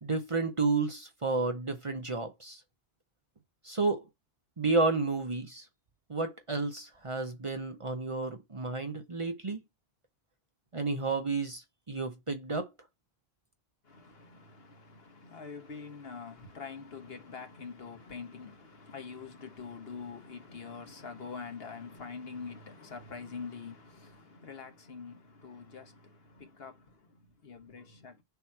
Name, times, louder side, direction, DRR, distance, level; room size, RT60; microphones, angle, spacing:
voice 1, 0.0-2.6 3.6-4.0 4.6-5.7 6.1-9.6 10.7-12.7, right 3 dB, 35° right, 0.8 m, -31 dB
voice 2, 13.8-28.2, left 5 dB, 70° left, 1.5 m, -45 dB
7.0 x 3.0 x 5.8 m
omnidirectional pair, 1.1 m